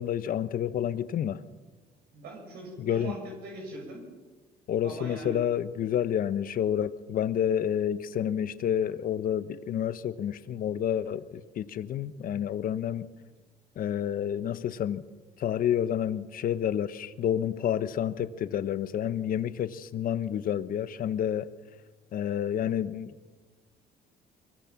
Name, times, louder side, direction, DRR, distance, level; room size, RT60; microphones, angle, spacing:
voice 1, 0.0-1.4 2.8-3.1 4.7-13.1 13.8-15.0 15.4-21.5 22.1-23.3, left 9 dB, 55° left, 12 dB, 1.2 m, -29 dB
voice 2, 2.1-4.1 4.8-5.4, right 1 dB, 75° right, 0 dB, 6.8 m, -41 dB
23.5 x 22.0 x 6.1 m, 1.3 s
cardioid pair, 110°, 17 cm